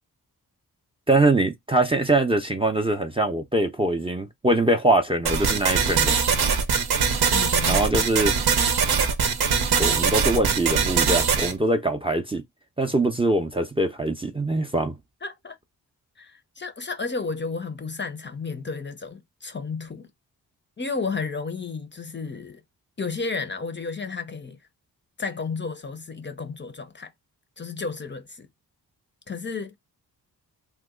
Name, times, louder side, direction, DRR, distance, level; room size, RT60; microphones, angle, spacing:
voice 1, 1.1-6.2 7.7-8.3 9.8-12.4 12.8-15.0, right 2 dB, 15° right, 0.5 m, -23 dB
sound 1, 5.3-11.5, right 6 dB, 70° right, 0.8 m, -22 dB
voice 2, 7.3-7.9 15.2-15.6 16.2-20.1 20.8-22.6 23.0-24.6 25.2-27.1 27.6-28.5 29.3-29.8, left 4 dB, 30° left, 0.6 m, -32 dB
2.9 x 2.1 x 3.7 m
cardioid pair, 70°, 39 cm